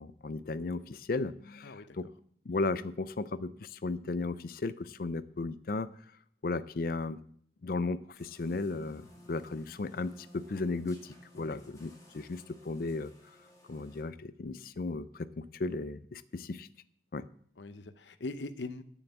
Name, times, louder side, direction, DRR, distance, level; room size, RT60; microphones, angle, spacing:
voice 1, 0.0-2.1 2.5-5.9 6.4-7.2 7.6-13.1 13.7-16.7 17.1-17.2, left 3 dB, 55° left, 14 dB, 0.4 m, -35 dB
voice 2, 1.6-2.0 11.3-11.6 17.6-18.8, left 2 dB, 85° left, 13 dB, 0.7 m, -41 dB
sound 1, 8.1-14.0, left 1 dB, 20° left, 2.5 m, -57 dB
9.3 x 7.0 x 8.1 m, 0.63 s
head